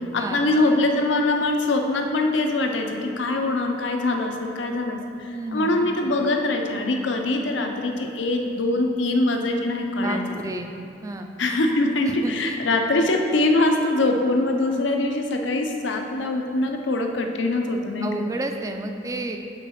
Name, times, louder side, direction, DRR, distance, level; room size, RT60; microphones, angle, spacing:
voice 1, 0.1-10.2 11.4-18.3, left 2 dB, 85° left, 3 dB, 0.6 m, -23 dB
voice 2, 5.3-5.9 10.0-10.7 11.0-11.3 12.0-12.6 18.0-19.4, right 2 dB, 20° right, 5 dB, 0.3 m, -31 dB
5.9 x 4.0 x 5.8 m, 2.8 s
head